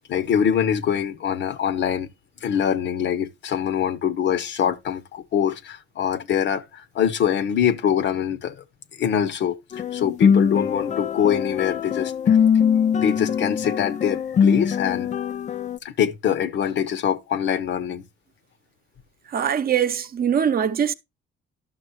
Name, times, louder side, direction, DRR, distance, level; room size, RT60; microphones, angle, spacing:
voice 1, 0.1-2.1 2.4-8.6 8.9-12.4 12.9-15.1 15.8-18.0, left 8 dB, 65° left, 0.8 m, -24 dB
sound 1, 9.7-15.8, left 7 dB, 35° left, 0.4 m, -22 dB
voice 2, 19.3-20.9, right 8 dB, 50° right, 0.7 m, -22 dB
11.5 x 6.1 x 3.1 m
cardioid pair, 90°, 20 cm